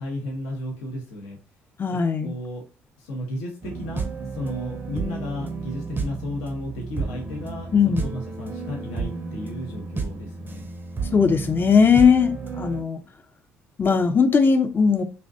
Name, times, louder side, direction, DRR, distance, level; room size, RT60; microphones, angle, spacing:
voice 1, 0.0-1.4 1.9-2.7 3.0-10.7, left 1 dB, 75° left, 0.6 m, -34 dB
voice 2, 1.8-2.3 7.7-8.1 11.1-13.0 13.8-15.0, left 5 dB, 35° left, 0.4 m, -19 dB
sound 1, 3.6-12.8, right 4 dB, 30° right, 0.5 m, -32 dB
2.6 x 2.1 x 2.4 m
hypercardioid pair, 50°, 6 cm